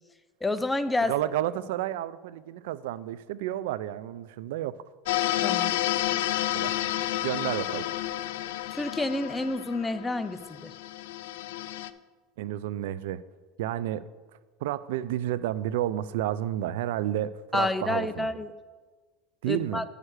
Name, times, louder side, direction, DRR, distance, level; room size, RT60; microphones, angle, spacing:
voice 1, 0.4-1.2 5.4-5.7 8.7-10.7 17.5-18.5 19.4-19.8, left 2 dB, 10° left, 12 dB, 0.4 m, -29 dB
voice 2, 1.1-4.7 6.5-6.7 7.2-7.8 12.4-13.2 13.6-14.0 14.6-18.3 19.4-19.8, right 12 dB, 85° right, 17 dB, 0.4 m, -31 dB
sound 1, 5.1-11.9, left 14 dB, 85° left, 0.4 m, -30 dB
9.9 x 6.5 x 4.8 m, 1.4 s
supercardioid pair, 130°, 0 cm